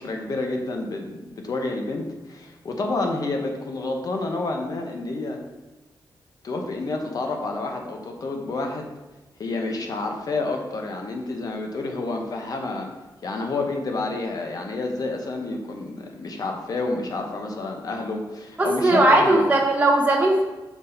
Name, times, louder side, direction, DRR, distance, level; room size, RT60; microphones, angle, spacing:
voice 1, 0.0-5.4 6.4-8.9 9.4-12.9 13.2-19.4, left 2 dB, 55° left, 2 dB, 0.9 m, -29 dB
voice 2, 18.6-20.4, right 2 dB, 20° right, -2 dB, 0.7 m, -18 dB
6.1 x 3.9 x 4.3 m, 1.1 s
wide cardioid pair, 135°, 8 cm